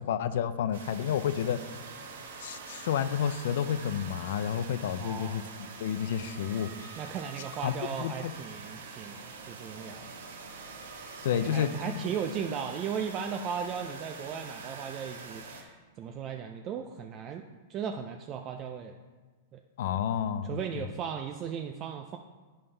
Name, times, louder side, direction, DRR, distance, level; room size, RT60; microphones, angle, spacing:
voice 1, 0.0-1.8 2.4-6.9 7.6-7.7 8.0-8.3 11.2-11.7 19.8-20.9, left 9 dB, 65° left, 13 dB, 0.4 m, -30 dB
sound 1, 0.7-15.6, right 4 dB, 90° right, 1.1 m, -45 dB
voice 2, 5.0-5.4 7.0-10.1 11.3-17.4 17.7-19.0 19.5-19.6 20.4-22.2, right 7 dB, 30° right, 4 dB, 0.3 m, -36 dB
8.7 x 5.4 x 3.3 m, 1.3 s
supercardioid pair, 155°, 0 cm